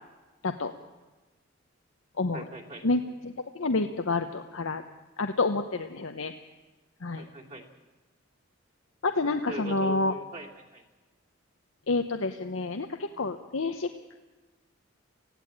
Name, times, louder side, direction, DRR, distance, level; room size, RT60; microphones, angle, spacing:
voice 1, 2.3-2.9 7.2-7.7 9.5-10.8, equal, 35° right, 0 dB, 2.7 m, -40 dB
voice 2, 2.8-4.8 5.2-6.3 7.0-7.2 9.0-10.1 11.9-14.1, left 3 dB, 80° left, 7 dB, 0.9 m, -29 dB
19.5 x 15.5 x 8.8 m, 1.2 s
head